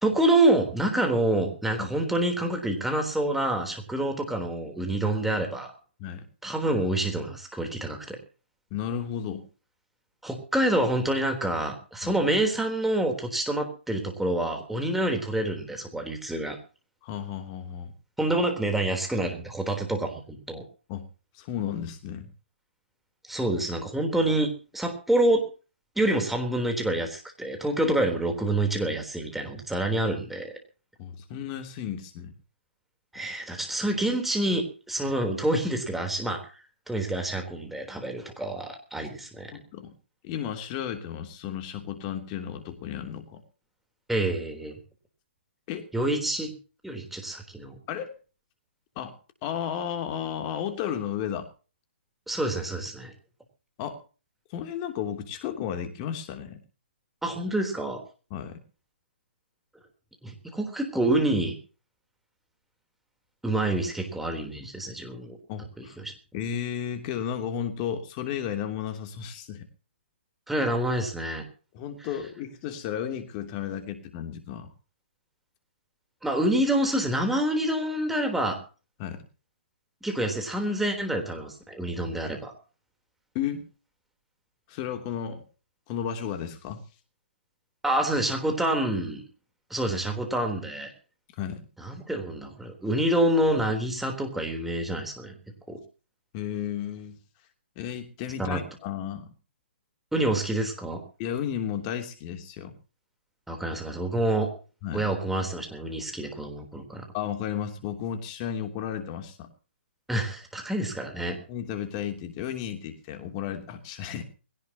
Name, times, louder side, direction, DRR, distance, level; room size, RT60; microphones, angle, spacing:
voice 1, 0.0-5.7 6.4-8.2 10.2-16.6 18.2-20.6 23.3-25.4 26.0-30.6 33.1-36.4 36.9-39.5 44.1-44.8 45.9-46.5 46.8-47.8 52.3-53.1 57.2-58.0 60.2-61.6 63.4-65.4 65.8-66.1 70.5-71.5 76.2-78.6 80.0-82.5 87.8-89.2 89.7-90.9 91.8-95.4 95.7-95.8 98.4-98.6 100.1-101.0 103.5-104.5 104.9-107.1 110.1-111.4, right 1 dB, 5° right, 3 dB, 3.7 m, -27 dB
voice 2, 8.7-9.5 12.0-12.2 17.0-17.9 20.9-21.0 21.3-22.3 31.0-32.3 39.5-39.9 40.2-43.4 45.7-45.9 47.9-48.1 48.9-49.2 49.4-51.5 53.8-54.0 54.5-56.6 58.3-58.6 65.5-66.0 66.3-69.7 71.7-74.7 79.0-79.2 83.3-83.7 84.7-85.4 85.9-86.8 91.4-91.6 96.3-97.2 97.7-99.3 101.2-102.7 104.8-105.1 107.1-109.5 111.2-114.2, left 9 dB, 30° left, 6 dB, 3.0 m, -33 dB
21.5 x 17.5 x 3.0 m, 0.36 s
hypercardioid pair, 140°, 6 cm